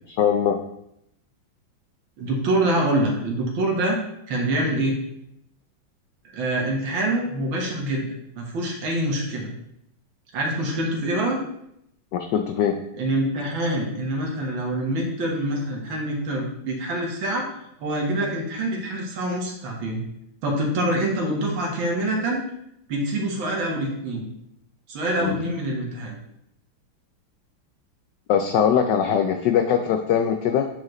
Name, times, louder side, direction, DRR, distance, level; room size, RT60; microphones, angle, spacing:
voice 1, 0.1-0.6 12.1-12.8 25.2-25.4 28.3-30.7, left 8 dB, 80° left, 6 dB, 0.9 m, -21 dB
voice 2, 2.2-4.0 4.3-5.0 6.3-8.0 8.4-9.5 10.3-11.4 13.0-17.5 17.8-20.0 20.4-22.4 22.9-24.3 24.9-26.2, right 1 dB, 65° right, 0 dB, 2.1 m, -25 dB
9.0 x 5.0 x 3.1 m, 0.77 s
omnidirectional pair, 2.4 m